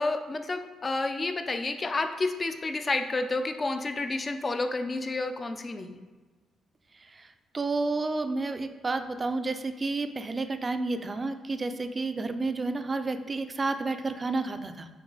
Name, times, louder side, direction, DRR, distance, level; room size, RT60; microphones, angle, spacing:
voice 1, 0.0-6.0, left 3 dB, 30° left, 7 dB, 0.6 m, -30 dB
voice 2, 7.5-14.9, right 3 dB, 30° right, 9 dB, 0.5 m, -30 dB
6.1 x 4.5 x 4.0 m, 1.3 s
cardioid pair, 90°, 0 cm